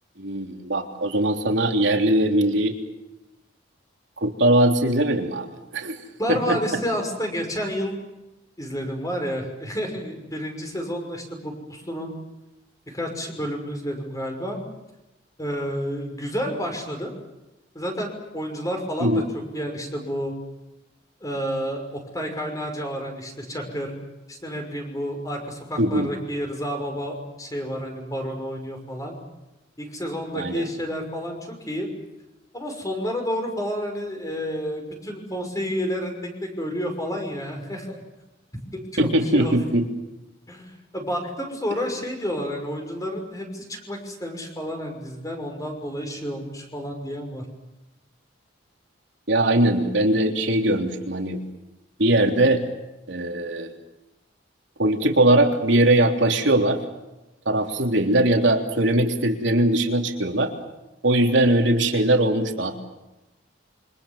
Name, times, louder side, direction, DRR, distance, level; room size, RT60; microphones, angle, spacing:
voice 1, 0.2-2.7 4.2-5.5 5.7-6.0 6.3-6.6 19.0-19.2 25.8-26.1 30.3-30.7 39.0-39.9 49.3-51.4 52.0-52.6 53.1-53.7 54.8-56.8 57.4-60.5 61.0-62.8, right 1 dB, 70° right, 4 dB, 3.4 m, -20 dB
voice 2, 6.2-8.0 8.6-12.1 12.9-14.6 15.4-17.1 17.7-19.2 19.5-20.3 21.2-23.9 24.3-29.2 29.8-31.9 32.5-36.1 36.4-38.0 38.9-39.1 39.3-39.6 40.5-47.4, equal, 20° left, 3 dB, 5.9 m, -30 dB
28.0 x 25.0 x 7.4 m, 0.97 s
head